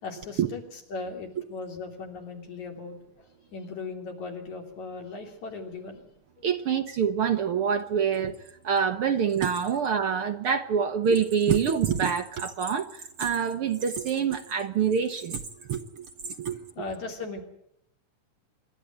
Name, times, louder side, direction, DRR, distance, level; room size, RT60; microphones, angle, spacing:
voice 1, 0.0-6.0 6.4-6.5 9.7-9.8 15.6-15.7 16.8-17.4, left 4 dB, 65° left, 4.6 m, -38 dB
voice 2, 6.4-8.3 8.6-15.4 15.7-16.7, right 7 dB, 65° right, 1.5 m, -26 dB
26.5 x 11.5 x 9.4 m
omnidirectional pair, 3.6 m